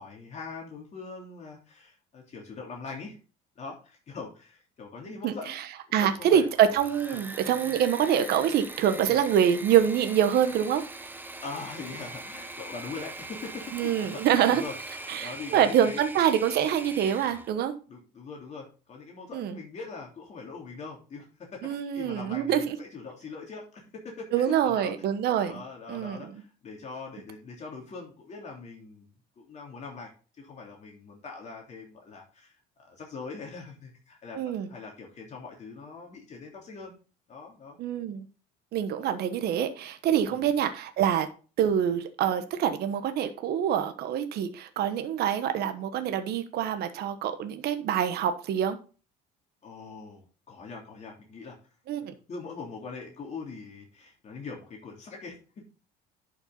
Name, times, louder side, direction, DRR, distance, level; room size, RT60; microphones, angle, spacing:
voice 1, 0.0-3.2 3.5-5.6 5.9-6.4 7.1-7.2 9.1-9.2 11.4-16.0 17.9-21.3 21.5-24.9 25.4-29.1 29.4-34.4 34.7-37.0 37.3-37.8 40.3-40.5 49.6-51.6 52.3-55.7, left 4 dB, 40° left, -1 dB, 3.1 m, -42 dB
voice 2, 5.2-5.6 5.9-10.8 13.7-14.6 15.1-17.7 19.3-19.6 21.6-22.8 24.3-25.6 25.9-26.3 34.3-34.7 37.8-38.3 38.7-41.3 41.6-48.8 51.9-52.1, right 9 dB, 60° right, 9 dB, 1.2 m, -25 dB
Engine / Mechanisms, 6.3-17.5, right 2 dB, 10° right, 1.1 m, -42 dB
11.0 x 5.9 x 3.9 m, 0.35 s
cardioid pair, 115°, 19 cm